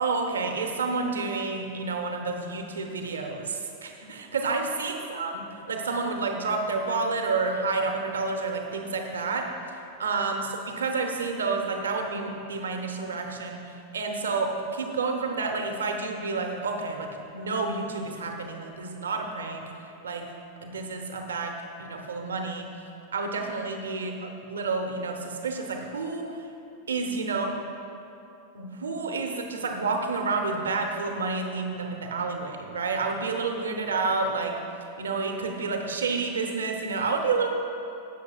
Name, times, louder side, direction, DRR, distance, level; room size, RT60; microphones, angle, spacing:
voice 1, 0.0-20.3 20.6-22.7 23.1-24.1 24.4-26.4 26.9-27.6 28.5-34.6 35.0-37.5, right 4 dB, 70° right, 3 dB, 0.9 m, -30 dB
20.0 x 6.7 x 2.4 m, 2.8 s
figure-of-eight pair, 90°, 0 cm